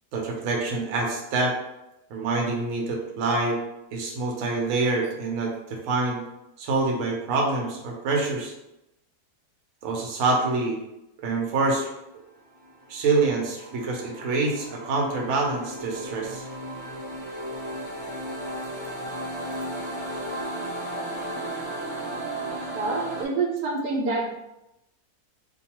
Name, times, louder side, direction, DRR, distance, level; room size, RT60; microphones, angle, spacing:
voice 1, 0.1-1.6 2.1-3.6 3.9-6.2 6.6-8.5 9.8-10.8 11.2-11.9 12.9-16.5, right 3 dB, 65° right, 0 dB, 0.9 m, -26 dB
sound 1, 12.5-23.3, right 1 dB, 25° left, 0.7 m, -35 dB
voice 2, 22.7-24.3, right 3 dB, 90° right, 0 dB, 1.2 m, -27 dB
2.6 x 2.2 x 2.8 m, 0.88 s
omnidirectional pair, 1.7 m